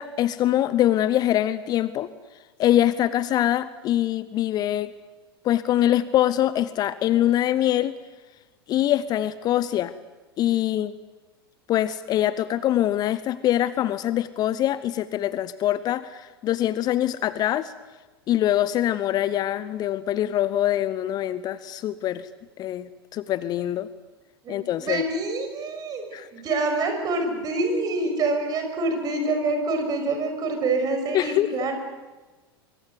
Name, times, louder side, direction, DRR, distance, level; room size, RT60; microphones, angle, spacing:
voice 1, 0.0-2.1 2.6-4.9 5.4-7.9 8.7-9.9 10.4-10.9 11.7-17.7 18.3-22.3 22.6-23.9 24.5-25.0 26.1-26.3 31.1-31.7, left 12 dB, 30° left, 16 dB, 0.8 m, -24 dB
voice 2, 24.4-31.8, right 2 dB, 30° right, 5 dB, 6.4 m, -26 dB
24.5 x 24.0 x 8.0 m, 1.2 s
figure-of-eight pair, 85°, 13 cm